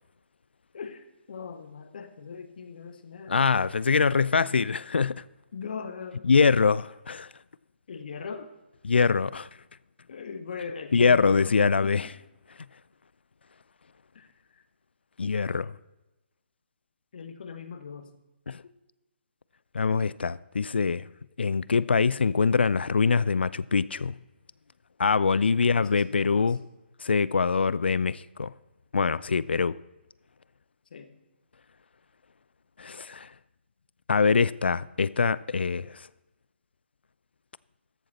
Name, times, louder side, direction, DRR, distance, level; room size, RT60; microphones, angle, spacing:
voice 1, 0.7-3.5 5.5-6.3 7.9-8.5 10.1-12.1 14.1-14.6 17.1-18.1 25.5-26.6 30.9-31.2, left 5 dB, 50° left, 1.0 m, -40 dB
voice 2, 3.3-5.2 6.2-7.3 8.8-9.5 10.9-12.1 15.2-15.8 18.5-18.6 19.7-21.1 21.4-24.2 25.0-26.6 27.0-28.5 28.9-29.8 32.8-33.3 34.1-36.1, left 5 dB, 65° left, 0.4 m, -24 dB
13.5 x 7.4 x 4.2 m
figure-of-eight pair, 135°, 6 cm